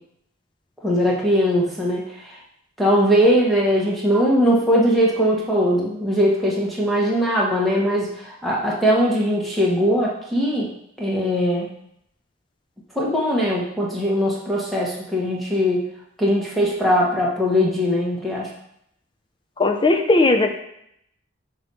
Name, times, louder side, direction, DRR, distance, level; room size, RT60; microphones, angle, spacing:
voice 1, 0.8-2.0 2.8-10.7 11.0-11.7 12.9-15.8 16.2-18.5, equal, ahead, -5 dB, 1.2 m, -20 dB
voice 2, 19.6-20.6, left 2 dB, 25° left, 5 dB, 0.5 m, -17 dB
5.9 x 3.0 x 5.4 m, 0.74 s
head